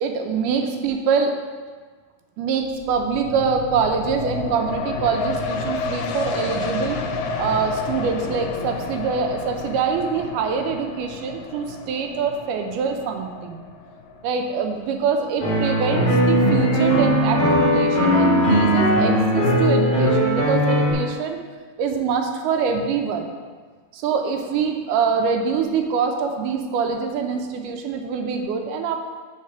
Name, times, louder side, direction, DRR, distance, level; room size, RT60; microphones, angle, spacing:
voice 1, 0.0-1.3 2.4-13.6 14.2-21.4 21.8-23.3 23.9-29.0, right 5 dB, 85° right, 4 dB, 2.2 m, -24 dB
sound 1, 2.6-15.9 16.3-16.4, left 4 dB, 80° left, 1.8 m, -31 dB
sound 2, 15.4-20.9, equal, 35° left, 0.8 m, -18 dB
6.5 x 4.1 x 5.6 m, 1.5 s
omnidirectional pair, 3.6 m